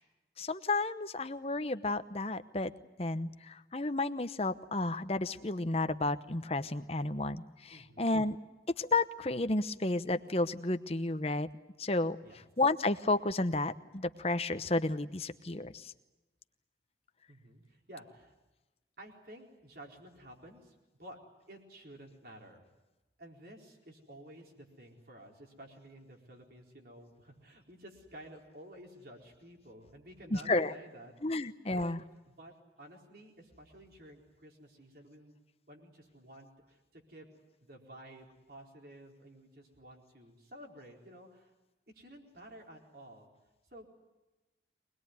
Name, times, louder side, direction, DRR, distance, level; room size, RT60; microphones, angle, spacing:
voice 1, 0.4-2.7 3.0-8.4 8.8-11.5 11.8-12.2 12.6-15.9 30.3-30.7 31.2-32.0, left 2 dB, 35° left, 11 dB, 0.9 m, -32 dB
voice 2, 7.7-8.2 12.2-12.4 17.3-18.3 19.0-21.2 21.5-22.6 23.2-31.5 31.7-32.0 32.3-35.3 35.7-37.3 37.6-41.5 41.9-43.3 43.7-43.9, right 1 dB, 55° right, 1 dB, 4.4 m, -53 dB
24.5 x 20.5 x 9.5 m, 1.1 s
head